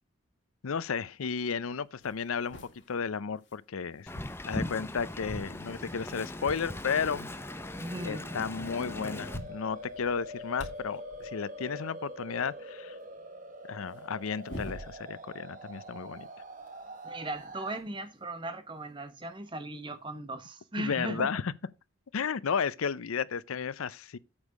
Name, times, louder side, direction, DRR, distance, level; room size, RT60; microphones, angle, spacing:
voice 1, 0.6-2.6 2.9-4.1 4.4-7.3 8.0-13.0 13.7-16.3 20.8-21.5 22.1-24.2, left 6 dB, 85° left, 0.5 m, -33 dB
sound 1, 1.4-1.5 1.9-4.9 5.2-6.9 7.5-7.6 7.8-7.9 8.7-8.8 9.0-11.4 13.9-15.4 15.7-18.0 19.0-19.1 20.1-20.2, equal, 55° left, 3.1 m, -48 dB
Wind, 4.1-9.4, left 1 dB, 10° left, 0.6 m, -39 dB
sound 2, 5.6-17.8, equal, 40° right, 1.3 m, -45 dB
voice 2, 7.7-8.3 17.0-21.3, right 1 dB, 25° right, 1.1 m, -38 dB
8.7 x 6.3 x 4.9 m
head